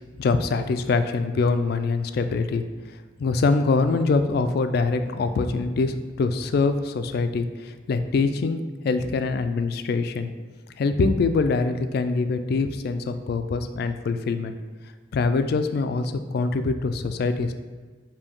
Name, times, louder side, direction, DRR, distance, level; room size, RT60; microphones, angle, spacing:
voice 1, 0.2-2.6 3.2-10.3 10.8-14.5 15.1-17.5, left 4 dB, 60° left, 9 dB, 0.3 m, -24 dB
5.2 x 2.7 x 3.5 m, 1.4 s
head